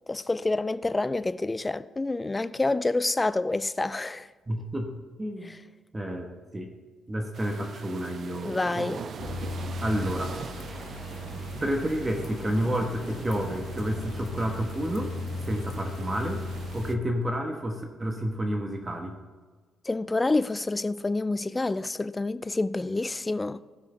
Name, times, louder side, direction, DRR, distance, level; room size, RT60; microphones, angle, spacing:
voice 1, 0.1-4.3 5.5-5.6 8.4-9.0 19.9-23.6, left 2 dB, 20° left, 0.4 m, -28 dB
voice 2, 4.5-4.9 5.2-5.5 5.9-6.7 7.1-9.1 9.8-10.4 11.6-15.1 15.4-16.4 16.7-19.2, equal, 20° right, 1.2 m, -30 dB
sound 1, 7.3-16.9, right 7 dB, 55° right, 0.5 m, -42 dB
sound 2, 9.2-16.9, left 3 dB, 65° left, 1.1 m, -37 dB
15.0 x 6.1 x 3.4 m
cardioid pair, 90°, 0 cm